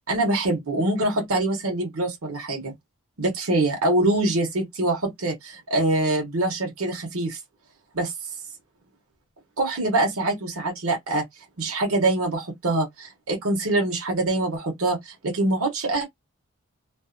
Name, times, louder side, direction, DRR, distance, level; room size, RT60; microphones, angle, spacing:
voice 1, 0.1-2.7 3.2-7.4 7.9-8.1 9.6-11.2 11.6-16.0, right 2 dB, 75° right, 0.9 m, -24 dB
2.5 x 2.1 x 2.5 m
head